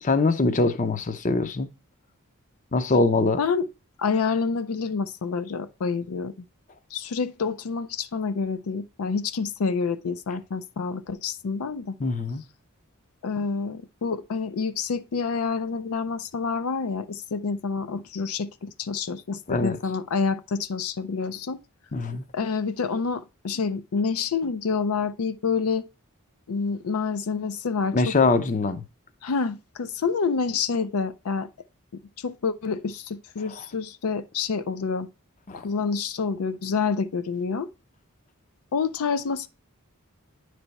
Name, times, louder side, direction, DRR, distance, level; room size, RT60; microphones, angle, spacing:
voice 1, 0.0-1.7 2.7-3.4 12.0-12.4 19.5-19.8 21.9-22.2 27.9-28.8 35.5-35.6, left 3 dB, 35° left, 0.6 m, -23 dB
voice 2, 3.4-3.7 4.0-6.4 6.9-12.0 13.2-21.6 22.3-25.9 26.5-28.2 29.2-31.5 32.2-35.1 35.5-37.7 38.7-39.5, left 5 dB, 80° left, 0.5 m, -28 dB
9.8 x 3.4 x 4.0 m
head